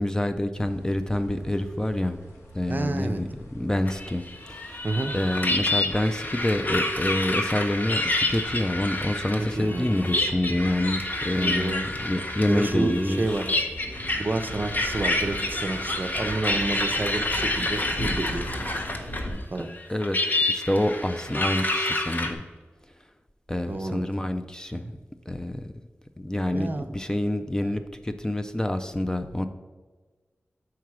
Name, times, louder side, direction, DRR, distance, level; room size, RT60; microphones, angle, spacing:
voice 1, 0.0-2.2 2.5-4.2 4.5-4.9 5.1-13.3 19.9-20.2 20.5-22.4 23.5-24.8 25.3-25.7 26.2-29.5, left 1 dB, 15° left, 8 dB, 0.4 m, -27 dB
sound 1, 0.5-19.3, equal, 85° left, 1.3 m, -41 dB
voice 2, 2.7-3.2 4.8-5.1 9.6-9.9 11.4-11.8 12.5-13.5 14.1-18.5 19.5-19.7 23.7-24.0 24.8-24.9 26.5-26.9 27.6-27.7, right 2 dB, 45° right, 8 dB, 0.5 m, -29 dB
sound 2, 3.9-19.3 19.6-22.3, left 2 dB, 40° left, 0.8 m, -28 dB
sound 3, 8.2-15.5, equal, 70° left, 0.6 m, -46 dB
5.9 x 4.7 x 4.7 m, 1.4 s
wide cardioid pair, 70°, 5 cm